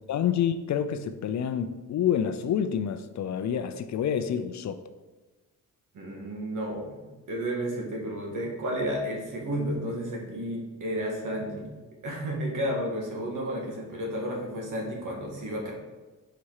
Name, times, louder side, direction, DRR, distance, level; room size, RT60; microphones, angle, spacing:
voice 1, 0.1-4.8, left 8 dB, 55° left, 10 dB, 0.5 m, -28 dB
voice 2, 5.9-7.0 7.3-11.7 12.0-15.7, equal, 65° right, -1 dB, 1.9 m, -32 dB
5.1 x 4.2 x 4.8 m, 1.2 s
cardioid pair, 75°, 33 cm